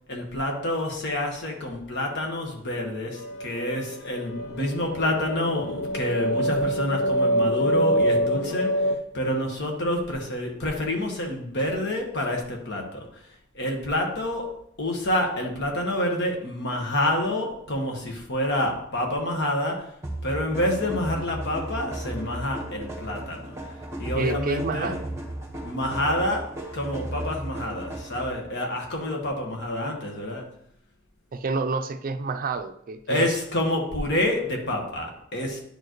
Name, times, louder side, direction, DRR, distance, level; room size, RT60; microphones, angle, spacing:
voice 1, 0.0-13.3 13.5-19.9 20.2-23.6 24.0-24.9 25.6-30.5 33.1-35.6, left 1 dB, 60° left, 1 dB, 1.4 m, -28 dB
sound 1, 3.1-9.0, equal, 80° left, 0.6 m, -25 dB
sound 2, 20.0-28.5, right 1 dB, 15° right, 1.2 m, -35 dB
voice 2, 24.2-25.0 31.3-33.3, right 3 dB, 45° right, 9 dB, 0.4 m, -28 dB
9.8 x 4.7 x 3.1 m, 0.71 s
head